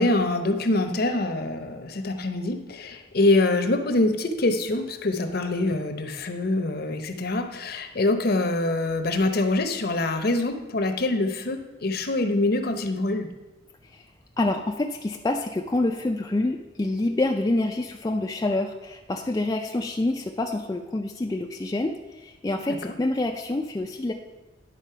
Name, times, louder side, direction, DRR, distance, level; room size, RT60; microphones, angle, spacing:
voice 1, 0.0-13.3 22.7-22.9, left 2 dB, 55° left, 7 dB, 0.7 m, -25 dB
voice 2, 14.4-24.1, left 2 dB, 20° left, 2 dB, 0.3 m, -27 dB
9.9 x 4.2 x 5.6 m, 1.1 s
head